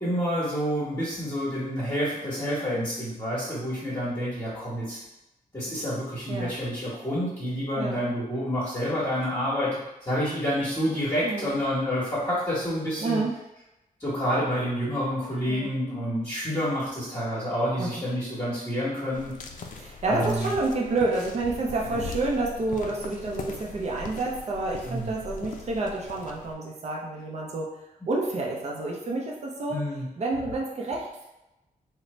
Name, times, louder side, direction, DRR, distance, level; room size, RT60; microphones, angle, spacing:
voice 1, 0.0-5.0 5.5-13.2 14.0-19.3 20.0-20.5 21.9-22.1 24.9-25.2 29.7-30.1, equal, 20° left, -11 dB, 1.0 m, -28 dB
voice 2, 13.0-13.3 15.5-15.7 17.8-18.1 19.8-27.8 28.1-29.8 30.2-31.3, right 2 dB, 50° right, -2 dB, 0.6 m, -29 dB
sound 1, 19.1-26.5, left 3 dB, 60° left, 0.4 m, -40 dB
3.9 x 2.1 x 3.1 m, 0.93 s
wide cardioid pair, 155°, 15 cm